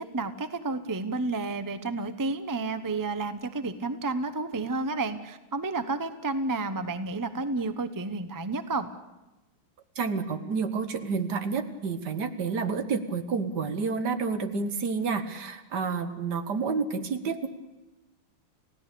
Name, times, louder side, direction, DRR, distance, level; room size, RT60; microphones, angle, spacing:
voice 1, 0.0-8.9, right 3 dB, 30° right, 10 dB, 0.4 m, -31 dB
voice 2, 10.0-17.5, right 5 dB, 60° right, 9 dB, 1.8 m, -29 dB
29.5 x 16.5 x 6.9 m, 1.0 s
omnidirectional pair, 2.1 m